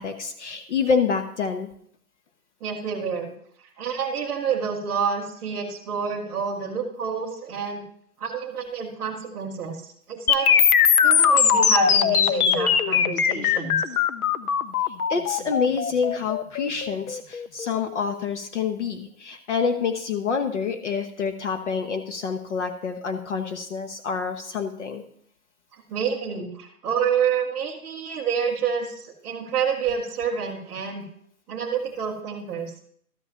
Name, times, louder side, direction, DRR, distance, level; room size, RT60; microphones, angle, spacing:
voice 1, 0.0-1.7 15.1-25.0, left 5 dB, 50° left, 6 dB, 1.2 m, -27 dB
voice 2, 2.6-3.3 3.8-7.8 8.2-9.8 10.1-10.5 11.0-13.9 25.7-31.1 31.5-32.7, right 6 dB, 5° right, -7 dB, 0.6 m, -28 dB
sound 1, 10.3-18.2, left 7 dB, 70° left, 1.0 m, -20 dB
12.5 x 5.5 x 5.7 m, 0.65 s
hypercardioid pair, 160°, 45 cm